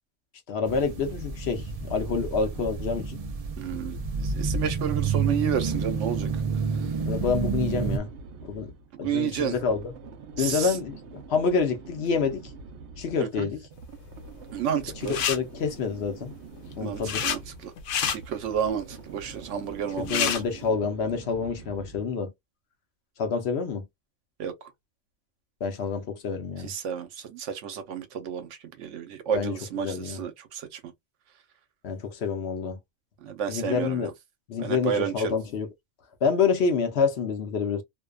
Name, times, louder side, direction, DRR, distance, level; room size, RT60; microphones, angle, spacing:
voice 1, 0.5-3.2 7.0-8.1 8.4-8.7 9.0-9.8 10.4-12.4 13.0-13.6 15.3-16.3 16.8-17.3 20.0-22.3 23.2-23.9 25.6-26.7 29.3-29.5 29.8-30.2 31.8-32.8 33.5-34.1 34.5-35.7 36.2-37.8, left 5 dB, 65° left, 0.9 m, -27 dB
sound 1, 0.7-8.0, right 5 dB, 55° right, 0.4 m, -29 dB
voice 2, 3.6-6.3 9.0-9.5 10.4-10.7 13.2-13.5 14.5-15.2 16.8-17.7 18.1-20.4 24.4-24.7 26.6-28.5 28.8-30.9 33.2-34.1 34.6-35.4, right 8 dB, 90° right, 1.0 m, -31 dB
sound 2, 4.7-22.2, right 4 dB, 75° right, 0.8 m, -45 dB
sound 3, 15.0-15.4 16.6-17.4 17.8-18.2 19.7-19.8 20.0-20.4, left 8 dB, 85° left, 0.9 m, -27 dB
2.5 x 2.2 x 2.2 m
omnidirectional pair, 1.2 m